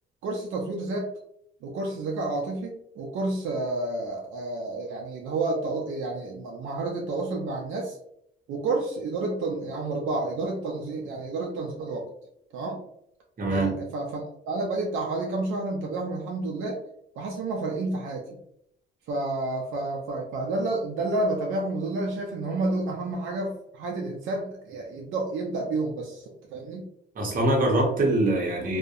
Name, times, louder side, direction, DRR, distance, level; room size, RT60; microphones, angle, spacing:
voice 1, 0.2-1.1 1.6-8.0 8.5-12.1 12.5-12.8 13.5-16.8 17.2-18.2 19.1-26.8, right 2 dB, 80° right, 0 dB, 0.5 m, -30 dB
voice 2, 13.4-13.7 27.2-28.8, right 1 dB, 45° right, 0 dB, 0.8 m, -23 dB
2.6 x 2.1 x 2.4 m, 0.73 s
cardioid pair, 90°, 20 cm